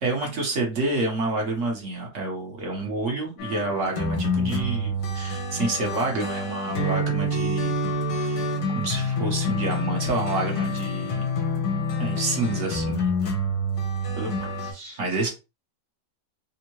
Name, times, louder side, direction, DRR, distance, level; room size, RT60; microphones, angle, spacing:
voice 1, 0.0-7.7 8.1-11.2 12.0-13.0 14.1-15.3, right 2 dB, 50° right, 0 dB, 1.1 m, -28 dB
sound 1, 3.4-14.7, left 1 dB, 70° left, 1.5 m, -27 dB
3.5 x 2.1 x 3.0 m, 0.28 s
omnidirectional pair, 1.9 m